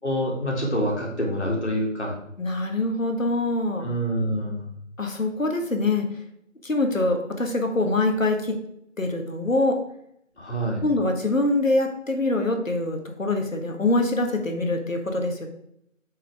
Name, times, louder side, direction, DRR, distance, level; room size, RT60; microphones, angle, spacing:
voice 1, 0.0-2.1 3.8-4.7 10.4-10.8, equal, 55° left, -2 dB, 2.5 m, -26 dB
voice 2, 2.4-3.9 5.0-6.0 6.6-8.6 9.0-9.8 10.8-15.5, left 2 dB, 80° left, 4 dB, 1.7 m, -24 dB
8.8 x 5.5 x 3.5 m, 0.76 s
figure-of-eight pair, 180°, 39 cm